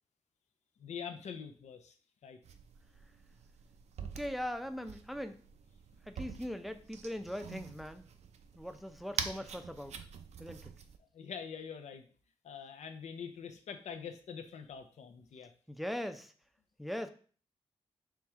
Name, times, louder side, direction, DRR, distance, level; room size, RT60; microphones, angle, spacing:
voice 1, 0.8-1.9 2.2-2.4 11.1-12.0 12.4-15.5, left 7 dB, 90° left, 7 dB, 0.6 m, -44 dB
sound 1, 2.4-11.0, right 6 dB, 75° right, 0.5 m, -46 dB
voice 2, 4.0-5.4 6.1-8.1 8.6-10.0 10.4-10.7 15.7-16.3 16.8-17.1, equal, ahead, 8 dB, 0.5 m, -40 dB
4.6 x 3.1 x 3.5 m, 0.41 s
cardioid pair, 85°, 11 cm